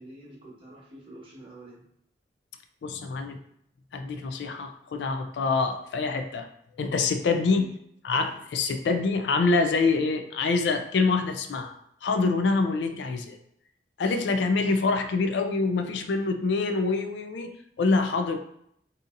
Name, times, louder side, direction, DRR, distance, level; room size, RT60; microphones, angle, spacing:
voice 1, 0.0-1.8 7.5-7.7, right 1 dB, 30° right, -5 dB, 1.0 m, -46 dB
voice 2, 2.8-3.4 3.9-6.5 6.8-7.7 8.0-13.4 14.0-17.5 17.8-18.4, left 4 dB, 75° left, 7 dB, 0.4 m, -25 dB
3.9 x 2.7 x 2.5 m, 0.72 s
head